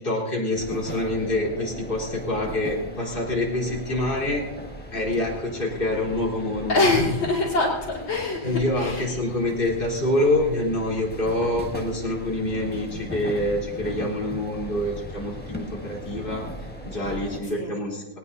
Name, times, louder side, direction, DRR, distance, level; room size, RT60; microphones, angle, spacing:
voice 1, 0.0-4.4 4.9-6.8 8.4-16.5 16.8-18.0, left 1 dB, 25° left, -4 dB, 4.0 m, -26 dB
sound 1, 0.5-17.4, equal, 5° left, 1.3 m, -38 dB
voice 2, 6.7-9.1 17.6-17.7, left 2 dB, 75° left, -3 dB, 3.2 m, -24 dB
20.0 x 18.5 x 2.8 m, 1.0 s
omnidirectional pair, 2.2 m